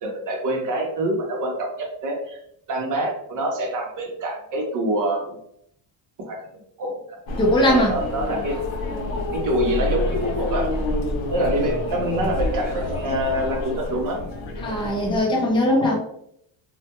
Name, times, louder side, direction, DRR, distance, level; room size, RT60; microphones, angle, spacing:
voice 1, 0.0-2.4 2.7-5.4 6.2-7.2 7.6-8.6 9.3-10.7 11.3-14.2, right 1 dB, 45° right, 0 dB, 0.7 m, -26 dB
sound 1, 7.3-15.2, left 2 dB, 75° left, 0.7 m, -27 dB
voice 2, 7.4-7.9 14.6-16.0, left 1 dB, 10° left, -2 dB, 0.3 m, -20 dB
2.2 x 2.1 x 2.8 m, 0.72 s
cardioid pair, 165°, 46 cm